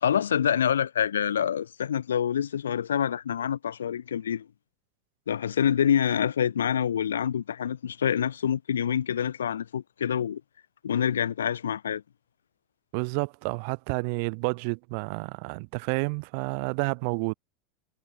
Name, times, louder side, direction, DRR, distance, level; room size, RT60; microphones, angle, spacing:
voice 1, 0.0-4.5 5.3-10.4 10.8-12.0, left 8 dB, 75° left, 1.8 m, -26 dB
voice 2, 12.9-17.3, right 35 dB, 55° right, 2.8 m, -30 dB
figure-of-eight pair, 85°, 0 cm